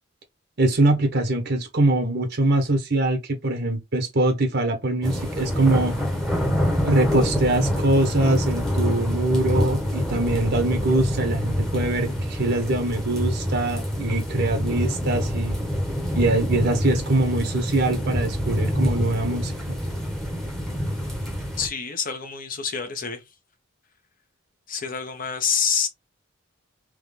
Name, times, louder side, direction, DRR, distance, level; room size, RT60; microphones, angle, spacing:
voice 1, 0.6-6.0 6.8-15.6 16.1-19.8, right 2 dB, 55° right, 1.0 m, -23 dB
sound 1, 5.0-21.7, equal, ahead, 1.1 m, -26 dB
voice 2, 21.6-23.2 24.7-25.9, left 6 dB, 45° left, 1.0 m, -27 dB
3.7 x 3.1 x 3.3 m
head